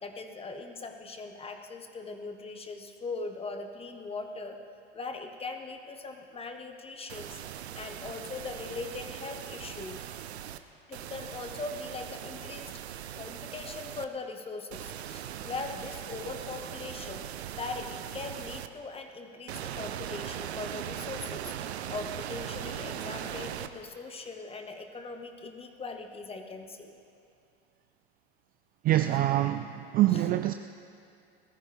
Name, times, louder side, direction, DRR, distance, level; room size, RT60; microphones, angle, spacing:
voice 1, 0.0-4.6 4.9-7.5 7.7-10.0 10.9-12.7 13.1-17.2 17.5-21.5 21.9-26.9 30.1-30.2, left 3 dB, 15° left, 5 dB, 1.4 m, -40 dB
sound 1, 7.1-10.6 10.9-14.1 14.7-18.7 19.5-23.7, right 10 dB, 75° right, 0.8 m, -40 dB
voice 2, 28.8-30.5, right 14 dB, 30° right, 9 dB, 0.4 m, -25 dB
20.5 x 14.0 x 3.5 m, 2.6 s
hypercardioid pair, 95°, 32 cm